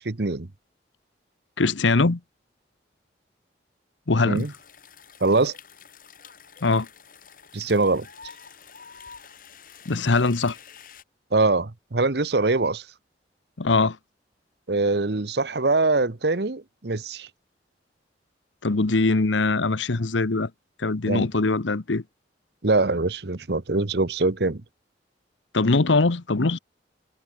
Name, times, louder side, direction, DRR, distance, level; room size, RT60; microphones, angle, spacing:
voice 1, 0.0-0.5 4.2-4.5 5.2-5.6 7.5-8.1 11.3-12.8 14.7-17.3 21.1-21.3 22.6-24.6, right 3 dB, 60° right, 1.0 m, -23 dB
voice 2, 1.6-2.2 4.1-4.5 6.6-6.9 9.9-10.6 13.6-14.0 18.6-20.5 20.8-22.0 25.5-26.6, left 3 dB, 85° left, 1.0 m, -22 dB
sound 1, 4.3-11.0, left 6 dB, 50° left, 5.8 m, -48 dB
head